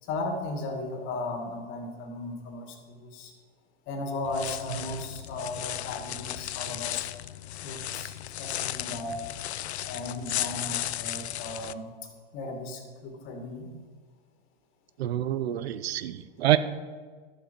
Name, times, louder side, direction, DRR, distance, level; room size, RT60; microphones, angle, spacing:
voice 1, 0.0-3.3 3.9-7.1 7.5-9.3 9.8-11.9 12.3-13.7, left 2 dB, 40° left, 4 dB, 2.1 m, -36 dB
sound 1, 4.2-11.7, left 12 dB, 90° left, 0.5 m, -35 dB
voice 2, 15.0-16.6, right 13 dB, 75° right, 13 dB, 0.7 m, -26 dB
12.5 x 7.3 x 5.3 m, 1.5 s
hypercardioid pair, 120°, 32 cm